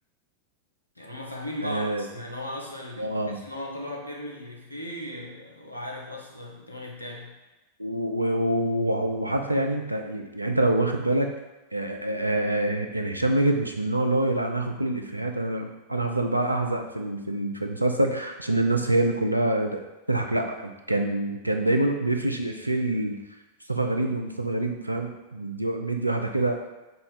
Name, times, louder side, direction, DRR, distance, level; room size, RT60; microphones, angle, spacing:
voice 1, 1.0-7.3, left 1 dB, 85° left, -1 dB, 0.6 m, -37 dB
voice 2, 1.6-2.0 3.0-3.4 7.8-11.3 11.7-23.2 23.7-26.6, right 1 dB, 85° right, 4 dB, 0.3 m, -26 dB
3.7 x 2.2 x 4.1 m, 1.1 s
figure-of-eight pair, 90°, 0 cm